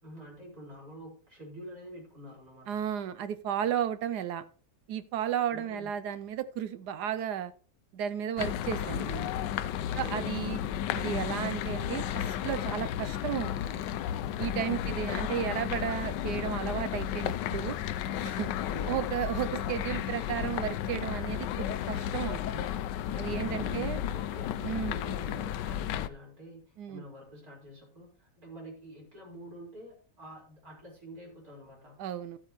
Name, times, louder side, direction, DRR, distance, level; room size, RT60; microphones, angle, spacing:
voice 1, 0.0-2.8 5.5-5.9 10.0-10.6 14.6-15.3 18.6-19.1 23.4-32.0, right 1 dB, 55° right, -3 dB, 5.4 m, -47 dB
voice 2, 2.7-4.4 4.9-7.5 7.9-9.3 10.0-10.6 10.9-13.8 14.4-17.8 18.2-18.5 18.9-22.7 23.1-24.0 24.6-24.9 26.8-27.0 32.0-32.4, right 9 dB, 70° right, 12 dB, 1.2 m, -33 dB
sound 1, 8.4-26.1, left 10 dB, 85° left, 1.3 m, -33 dB
14.0 x 8.4 x 3.1 m, 0.41 s
omnidirectional pair, 1.9 m